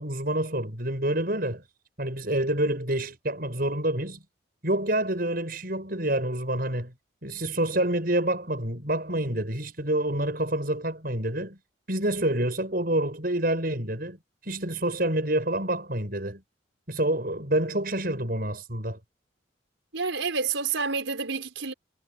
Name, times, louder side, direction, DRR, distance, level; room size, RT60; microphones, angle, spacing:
voice 1, 0.0-1.6 2.0-4.2 4.6-6.9 7.2-11.6 11.9-14.2 14.4-16.4 16.9-19.0, right 1 dB, 50° right, 7.5 m, -27 dB
voice 2, 19.9-21.7, right 5 dB, 85° right, 4.9 m, -29 dB
head